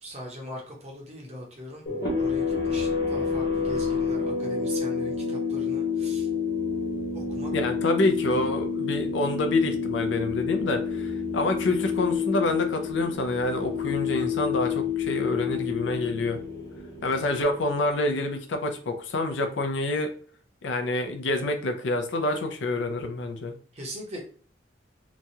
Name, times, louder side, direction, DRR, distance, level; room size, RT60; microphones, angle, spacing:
voice 1, 0.0-1.9 2.2-6.3 7.1-7.5 23.7-24.2, equal, 35° right, -1 dB, 0.8 m, -40 dB
sound 1, 1.9-18.1, left 5 dB, 55° left, 1.2 m, -29 dB
voice 2, 7.5-16.4 17.0-20.1 20.6-23.5, left 2 dB, 75° left, 5 dB, 0.5 m, -27 dB
3.0 x 2.3 x 2.7 m, 0.43 s
head